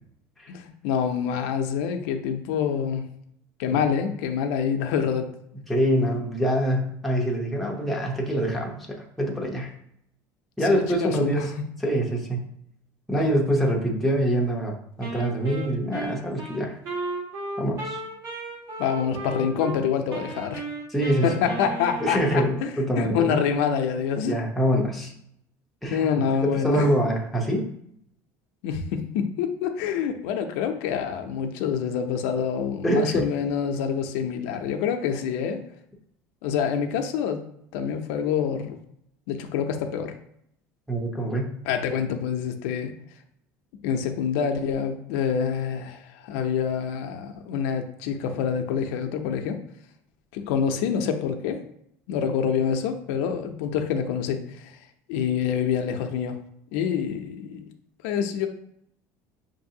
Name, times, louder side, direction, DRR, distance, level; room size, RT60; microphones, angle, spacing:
voice 1, 0.5-3.1 3.6-5.3 10.7-11.5 13.2-13.3 18.8-20.6 21.2-24.3 25.9-26.9 28.6-35.6 36.4-37.4 37.7-38.8 39.3-40.2 41.6-42.9 43.8-49.6 50.3-51.6 52.1-54.8 55.1-56.4 56.7-57.6 58.0-58.5, left 7 dB, 90° left, 6 dB, 0.5 m, -26 dB
voice 2, 5.7-9.7 10.6-11.5 11.8-12.4 13.1-16.8 17.6-18.0 20.9-21.3 22.0-23.4 24.2-25.1 25.8-26.1 26.4-27.7 32.8-33.2 40.9-41.6, equal, ahead, -1 dB, 0.6 m, -25 dB
Wind instrument woodwind instrument, 15.0-19.8 20.1-22.7, right 3 dB, 55° right, 1.2 m, -35 dB
5.5 x 2.6 x 2.7 m, 0.71 s
cardioid pair, 160°, 7 cm